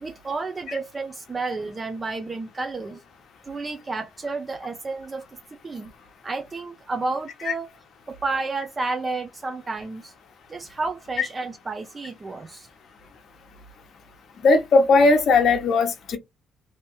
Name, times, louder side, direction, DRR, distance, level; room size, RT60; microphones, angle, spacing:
voice 1, 0.0-3.0 3.4-5.2 5.6-5.9 6.2-7.7 8.1-10.1 10.5-12.7, right 3 dB, 30° right, 0.6 m, -31 dB
voice 2, 14.4-16.2, left 3 dB, 60° left, 0.8 m, -18 dB
3.2 x 2.8 x 3.0 m
cardioid pair, 90°, 0 cm